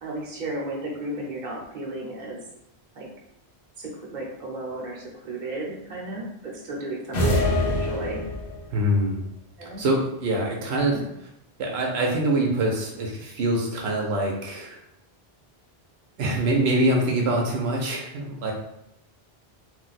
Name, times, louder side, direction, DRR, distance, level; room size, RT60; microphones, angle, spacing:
voice 1, 0.0-2.4 2.9-3.1 3.8-8.2 9.6-9.9 10.9-11.1, right 2 dB, 50° right, -2 dB, 0.9 m, -34 dB
sound 1, 7.1-8.7, left 1 dB, 60° left, 0.9 m, -24 dB
voice 2, 8.7-9.2 9.8-11.0 11.6-14.8 16.2-18.5, right 1 dB, 80° right, 0 dB, 0.8 m, -24 dB
2.6 x 2.2 x 3.9 m, 0.79 s
omnidirectional pair, 1.1 m